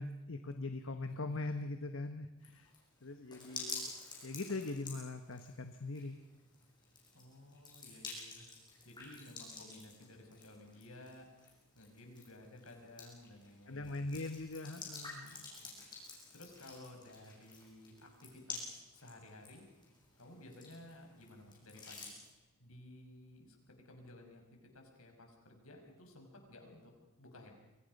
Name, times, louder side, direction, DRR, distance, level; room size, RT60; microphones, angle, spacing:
voice 1, 0.0-2.7 3.0-3.9 4.2-6.2 13.7-15.5, left 2 dB, 60° left, 7 dB, 1.2 m, -41 dB
sound 1, 2.4-22.3, left 3 dB, 20° left, 7.0 m, -50 dB
voice 2, 7.1-8.5 8.8-11.3 11.7-13.9 15.2-15.8 16.3-19.7 20.2-26.9 27.2-27.5, left 1 dB, 75° left, 3 dB, 5.8 m, -55 dB
29.5 x 24.5 x 5.4 m, 1.0 s
head